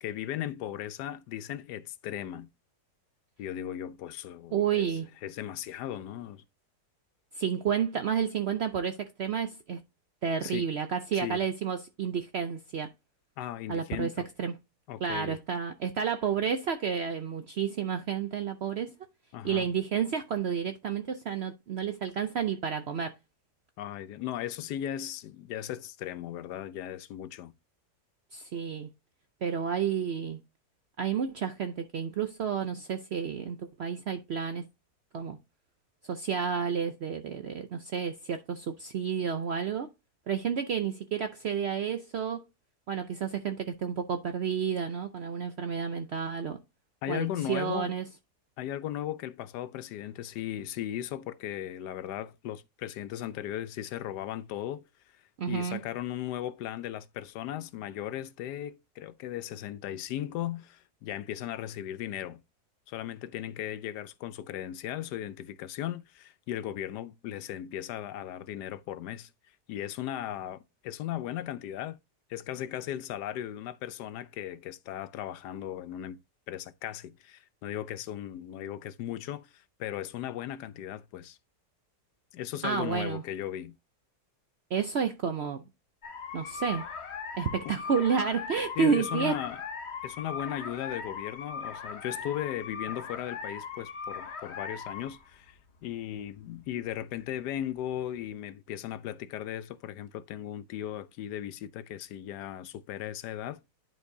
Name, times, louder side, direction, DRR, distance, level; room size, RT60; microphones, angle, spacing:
voice 1, 0.0-2.5 3.4-4.9 5.2-6.4 10.4-10.6 11.1-11.4 13.4-14.2 14.9-15.4 19.3-19.7 23.8-27.5 47.0-48.0 48.6-54.8 55.5-62.4 62.9-69.3 69.7-72.0 72.3-76.2 76.5-81.4 82.3-83.8 87.7-87.8 88.8-89.6 90.0-103.6, left 11 dB, 85° left, 1.2 m, -37 dB
voice 2, 4.5-5.1 7.3-9.8 10.2-12.9 13.7-14.1 14.4-14.5 15.0-18.9 19.4-23.1 28.3-28.9 29.4-30.4 31.0-34.7 35.1-35.4 36.1-39.9 40.3-42.4 42.9-46.6 47.1-48.0 55.4-55.8 82.6-83.2 84.7-85.6 86.3-86.8 87.4-89.4, right 7 dB, 65° right, 0.6 m, -30 dB
sound 1, 86.0-98.3, left 6 dB, 45° left, 1.1 m, -40 dB
10.5 x 4.5 x 2.7 m
omnidirectional pair, 1.7 m